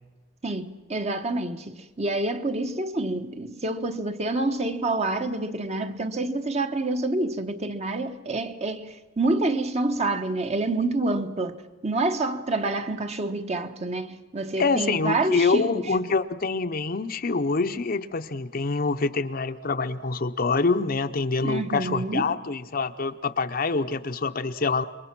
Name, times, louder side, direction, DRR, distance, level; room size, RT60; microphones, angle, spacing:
voice 1, 0.4-11.6 11.8-15.8 21.4-22.4, right 2 dB, 35° right, 1.1 m, -27 dB
voice 2, 14.6-24.8, left 4 dB, 50° left, 0.8 m, -26 dB
27.0 x 23.0 x 6.1 m
head